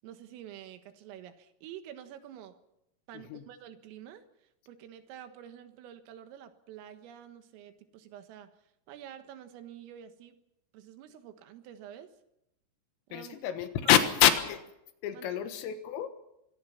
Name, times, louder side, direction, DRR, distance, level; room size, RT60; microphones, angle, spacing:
voice 1, 0.0-2.6 3.1-8.5 8.9-10.4 10.7-12.1 13.1-13.4 13.9-14.0 15.1-15.3, right 10 dB, 85° right, 8 dB, 4.1 m, -48 dB
voice 2, 13.1-14.7 15.0-16.1, left 10 dB, 85° left, 8 dB, 4.1 m, -27 dB
24.5 x 22.5 x 5.9 m, 0.84 s
omnidirectional pair, 5.8 m